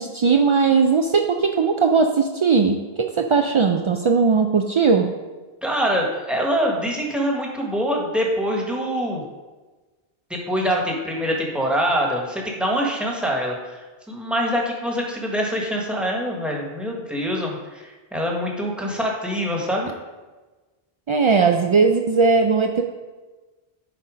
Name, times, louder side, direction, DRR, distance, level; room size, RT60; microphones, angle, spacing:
voice 1, 0.0-5.1 21.1-22.8, right 5 dB, 55° right, 3 dB, 0.3 m, -18 dB
voice 2, 5.6-9.2 10.3-19.9, equal, ahead, -2 dB, 1.3 m, -24 dB
9.8 x 4.2 x 5.0 m, 1.2 s
omnidirectional pair, 1.1 m